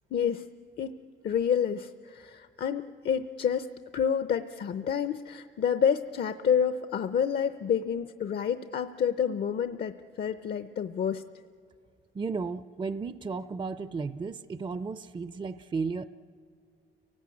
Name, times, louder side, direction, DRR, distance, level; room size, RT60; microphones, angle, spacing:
voice 1, 0.1-0.5 0.8-1.0 1.2-3.7 3.9-11.2, left 7 dB, 55° left, 10 dB, 0.7 m, -28 dB
voice 2, 12.1-16.1, right 4 dB, 25° right, 13 dB, 0.5 m, -34 dB
30.0 x 18.0 x 8.5 m, 2.2 s
cardioid pair, 90°, 20 cm